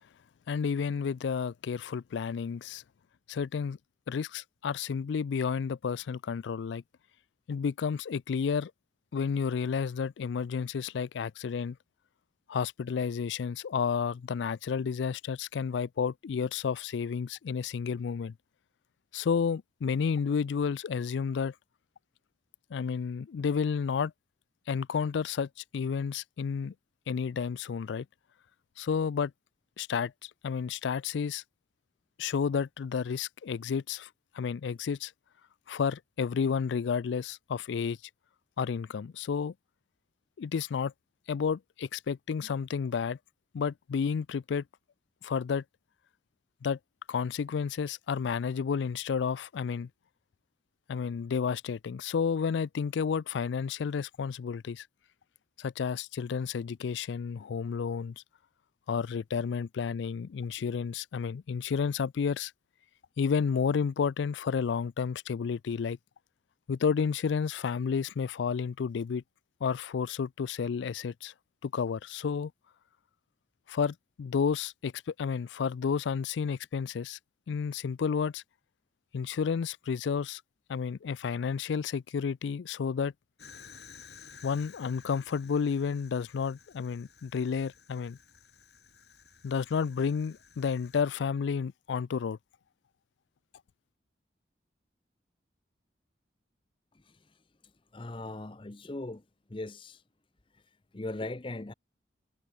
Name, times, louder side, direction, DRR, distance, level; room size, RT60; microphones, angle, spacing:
voice 1, 0.5-2.8 3.3-3.8 4.1-6.8 7.5-8.7 9.1-11.8 12.5-18.3 19.1-21.5 22.7-24.1 24.7-26.7 27.1-28.1 28.8-29.3 29.8-31.4 32.2-34.1 34.3-35.1 35.7-38.0 38.6-39.5 40.4-40.9 41.3-43.2 43.5-44.6 45.2-45.6 46.6-46.8 47.1-49.9 50.9-54.9 55.6-58.2 58.9-62.5 63.2-66.0 66.7-69.2 69.6-71.3 71.6-72.5 73.7-77.2 77.5-78.4 79.1-80.4 80.7-83.1 84.4-88.2 89.4-92.4, left 6 dB, 80° left, 0.4 m, -31 dB
Fire, 83.4-91.0, left 6 dB, 65° left, 6.5 m, -54 dB
voice 2, 97.9-99.2 99.5-100.0 100.9-101.7, left 2 dB, 30° left, 0.7 m, -39 dB
head